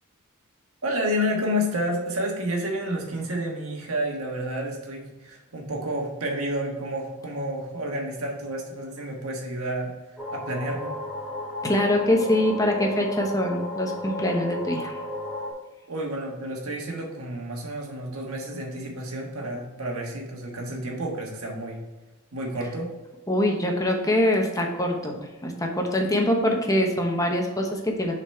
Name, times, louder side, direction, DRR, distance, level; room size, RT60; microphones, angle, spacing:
voice 1, 0.8-9.9 10.3-10.9 15.9-21.8 22.3-22.9, equal, 85° right, 0 dB, 1.5 m, -30 dB
sound 1, 10.2-15.5, left 2 dB, 5° right, 1.3 m, -34 dB
voice 2, 11.6-15.0 23.3-28.1, left 1 dB, 15° left, 1 dB, 0.9 m, -24 dB
6.8 x 4.1 x 4.3 m, 1.2 s
head